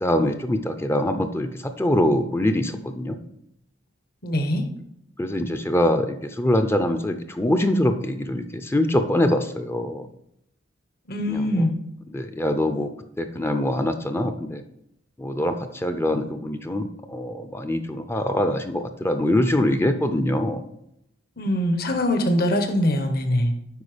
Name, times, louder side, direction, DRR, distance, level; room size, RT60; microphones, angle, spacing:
voice 1, 0.0-3.2 5.2-10.1 11.3-11.7 12.1-12.9 13.2-14.6 15.2-20.6, left 1 dB, 10° left, 7 dB, 0.5 m, -24 dB
voice 2, 4.2-4.6 11.1-11.8 21.4-23.5, left 1 dB, 50° left, 6 dB, 1.1 m, -22 dB
8.3 x 5.4 x 5.0 m, 0.78 s
head